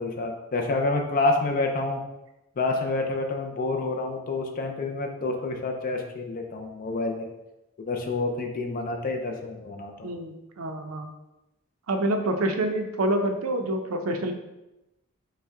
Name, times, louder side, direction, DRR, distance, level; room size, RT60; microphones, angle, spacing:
voice 1, 0.0-2.0 2.6-7.3 7.8-10.1, left 2 dB, 40° left, 3 dB, 0.4 m, -28 dB
voice 2, 10.0-11.1 11.9-14.3, right 1 dB, 70° right, 5 dB, 0.5 m, -27 dB
5.4 x 2.1 x 3.6 m, 0.95 s
head